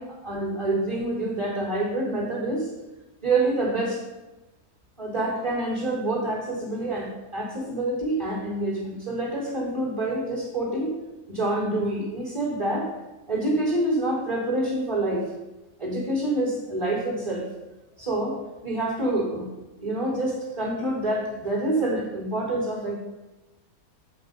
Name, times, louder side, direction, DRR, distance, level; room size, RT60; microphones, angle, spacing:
voice 1, 0.0-2.7 3.2-4.0 5.0-10.9 11.3-12.9 13.3-15.3 15.8-17.5 18.0-18.4 18.6-19.5 19.8-22.9, right 2 dB, 15° right, -5 dB, 3.7 m, -27 dB
8.4 x 7.7 x 5.4 m, 1.0 s
omnidirectional pair, 1.9 m